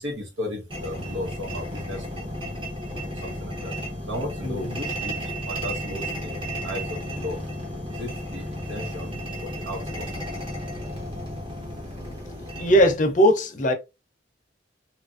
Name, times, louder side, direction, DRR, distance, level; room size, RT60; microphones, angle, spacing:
voice 1, 0.0-2.3 3.0-3.7 4.1-7.5 7.9-10.1, left 1 dB, 80° right, 1.1 m, -35 dB
sound 1, 0.7-12.9, equal, 25° right, 0.9 m, -33 dB
voice 2, 4.4-4.8 12.6-13.7, equal, 45° left, 0.6 m, -20 dB
2.8 x 2.5 x 2.4 m
head